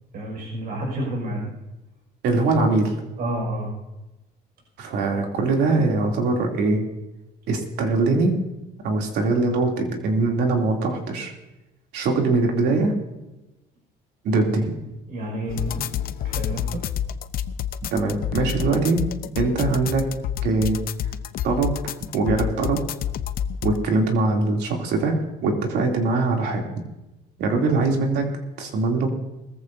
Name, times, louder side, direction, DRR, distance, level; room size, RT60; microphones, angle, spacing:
voice 1, 0.1-1.4 3.2-3.7 15.1-15.8 16.2-16.8 27.6-27.8, right 1 dB, 65° right, -1 dB, 5.9 m, -29 dB
voice 2, 2.2-3.0 4.8-6.8 7.5-8.4 8.8-11.3 11.9-13.0 14.2-14.8 17.9-19.0 19.4-20.0 20.4-20.8 21.4-21.8 22.1-22.8 23.6-26.6 27.4-28.3 28.6-29.1, right 3 dB, 80° right, 1 dB, 2.9 m, -22 dB
sound 1, 15.5-23.8, left 10 dB, 60° left, 0.7 m, -28 dB
20.5 x 14.5 x 2.7 m, 1.0 s
cardioid pair, 110°, 17 cm